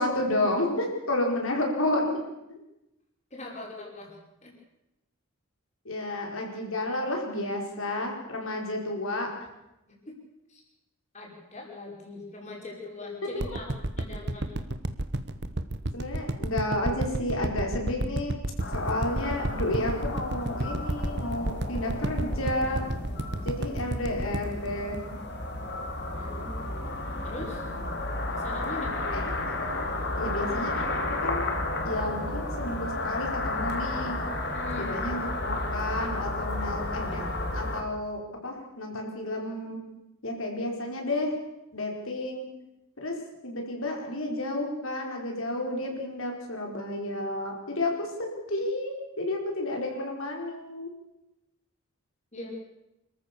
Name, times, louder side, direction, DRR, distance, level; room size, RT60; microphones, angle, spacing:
voice 1, 0.0-2.2 5.8-9.3 13.2-13.3 15.9-18.4 18.7-22.8 23.4-25.0 29.1-29.2 29.6-29.9 30.2-31.4 31.8-34.1 34.8-39.8 40.2-41.3 41.7-42.5 43.0-43.2 43.4-50.9, left 1 dB, 70° left, 1 dB, 4.8 m, -31 dB
voice 2, 3.3-4.5 10.1-10.2 10.5-10.6 11.1-13.7 14.0-14.5 26.1-26.6 27.2-27.6 28.3-29.2 34.5-35.0 52.3-52.5, left 2 dB, 30° left, -1 dB, 5.4 m, -41 dB
sound 1, 13.4-25.7 26.1-26.2, right 1 dB, 50° right, 1.1 m, -31 dB
sound 2, 18.6-37.8, left 2 dB, 50° left, 2.7 m, -32 dB
26.5 x 14.0 x 7.0 m, 0.91 s
head